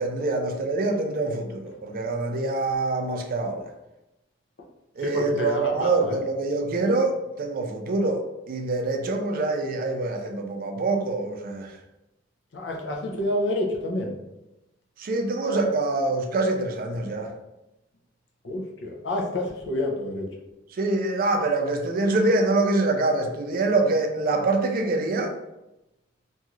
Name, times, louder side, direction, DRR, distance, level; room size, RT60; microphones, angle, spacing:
voice 1, 0.0-3.7 5.0-11.8 15.0-17.3 20.8-25.3, right 2 dB, 50° right, 0.4 m, -25 dB
voice 2, 5.0-6.2 12.5-14.1 18.4-20.3, left 1 dB, 70° left, 0.6 m, -28 dB
3.0 x 2.6 x 2.4 m
head